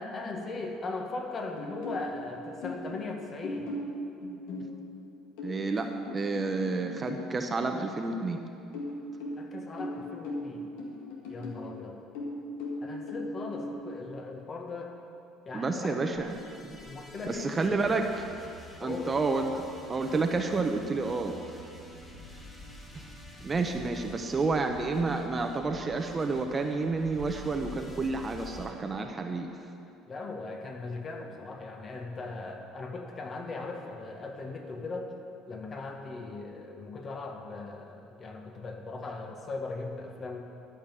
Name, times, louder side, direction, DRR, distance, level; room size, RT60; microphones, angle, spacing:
voice 1, 0.0-3.7 9.4-10.7 11.3-12.0 12.8-15.0 15.4-16.0 16.8-17.6 18.8-19.2 30.1-35.2 35.5-40.4, left 3 dB, 40° left, 3 dB, 1.6 m, -39 dB
sound 1, 1.6-3.0 3.4-7.3 8.7-11.7 12.1-13.7, left 1 dB, 75° left, 2.0 m, -38 dB
voice 2, 5.4-8.4 15.5-16.3 16.6-16.8 17.3-18.1 18.8-19.5 19.9-21.4 22.9-23.0 23.4-29.5, right 3 dB, 30° right, 4 dB, 0.9 m, -30 dB
sound 2, 16.1-28.7, left 1 dB, 20° left, 2.2 m, -48 dB
13.0 x 6.0 x 7.4 m, 2.6 s
hypercardioid pair, 75°, 0 cm